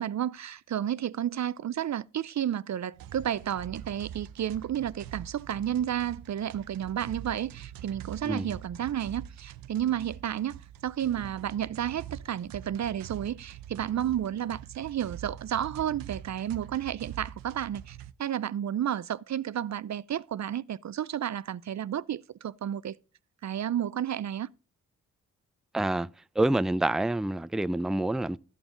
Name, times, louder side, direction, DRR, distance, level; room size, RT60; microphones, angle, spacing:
voice 1, 0.0-23.0 23.4-24.5, right 10 dB, 55° right, 0.7 m, -32 dB
sound 1, 2.9-18.1, right 10 dB, 85° right, 0.7 m, -44 dB
voice 2, 25.7-26.1 26.4-28.4, right 2 dB, ahead, 0.6 m, -27 dB
13.5 x 6.9 x 3.8 m
supercardioid pair, 45°, 34 cm